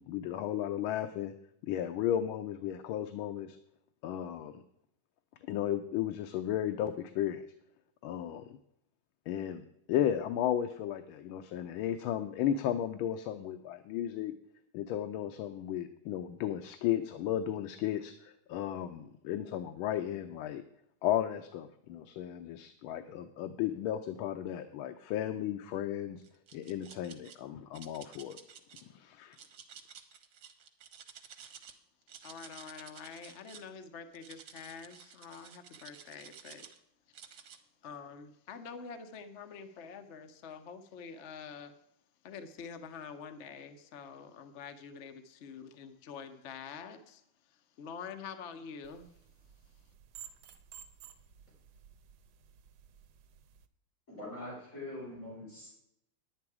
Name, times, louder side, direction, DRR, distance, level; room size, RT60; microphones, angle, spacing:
voice 1, 0.0-1.3 1.7-3.6 4.0-4.6 5.5-7.4 8.0-8.6 9.3-14.3 14.7-20.6 21.0-26.2 26.5-28.4 28.8-29.4, left 11 dB, 85° left, 8 dB, 1.5 m, -34 dB
sound 1, 26.2-27.4 27.7-28.8 29.3-31.7 32.0-33.7 34.1-36.8 37.1-37.6, right 7 dB, 70° right, 1.7 m, -52 dB
voice 2, 32.2-36.7 37.8-41.7 42.2-47.2 47.5-49.1, left 6 dB, 65° left, 9 dB, 0.7 m, -46 dB
sound 2, 48.8-53.7, right 9 dB, 90° right, 1.5 m, -55 dB
voice 3, 54.1-55.8, left 1 dB, 40° left, -6 dB, 5.5 m, -43 dB
10.5 x 9.2 x 4.8 m, 0.76 s
omnidirectional pair, 2.2 m